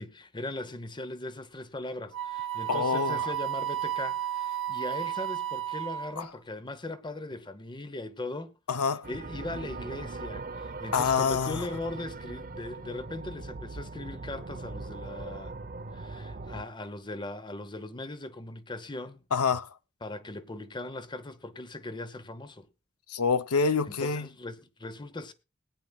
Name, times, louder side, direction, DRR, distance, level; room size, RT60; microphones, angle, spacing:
voice 1, 0.0-8.5 9.1-15.5 15.9-19.2 20.0-22.7 23.6-25.3, left 2 dB, 20° left, 1.0 m, -39 dB
Wind instrument woodwind instrument, 2.1-6.3, right 11 dB, 65° right, 1.7 m, -32 dB
voice 2, 2.7-3.3 6.2-6.3 8.7-9.1 10.9-11.7 19.3-19.7 23.1-24.3, left 5 dB, 90° left, 0.7 m, -27 dB
sound 1, 9.0-16.6, right 3 dB, 40° right, 0.8 m, -40 dB
20.5 x 9.5 x 2.4 m
head